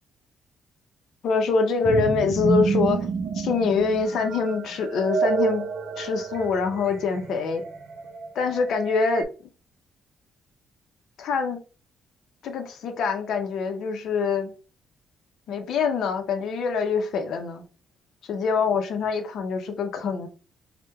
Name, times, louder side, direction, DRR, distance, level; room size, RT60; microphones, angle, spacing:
voice 1, 1.2-3.1 3.3-5.7 6.0-7.6 8.3-9.3 11.2-11.6 12.4-14.5 15.5-17.6 18.2-20.3, left 5 dB, 75° left, 0.6 m, -25 dB
sound 1, 1.8-9.2, right 5 dB, 60° right, 0.4 m, -29 dB
4.4 x 2.1 x 2.2 m
cardioid pair, 90°, 0 cm